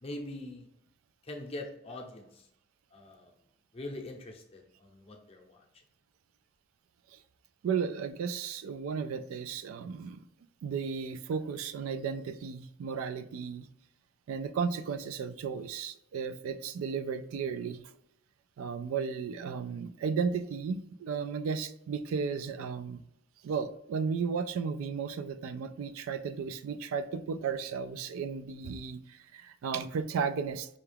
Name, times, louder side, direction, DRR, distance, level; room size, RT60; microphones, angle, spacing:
voice 1, 0.0-0.7 1.3-2.4 2.9-3.3 3.7-5.6, left 1 dB, 30° left, 1 dB, 0.6 m, -43 dB
voice 2, 7.6-10.2 10.6-13.7 14.3-17.8 18.6-23.0 23.4-30.7, right 6 dB, 80° right, 12 dB, 0.3 m, -34 dB
5.5 x 2.3 x 3.3 m, 0.79 s
head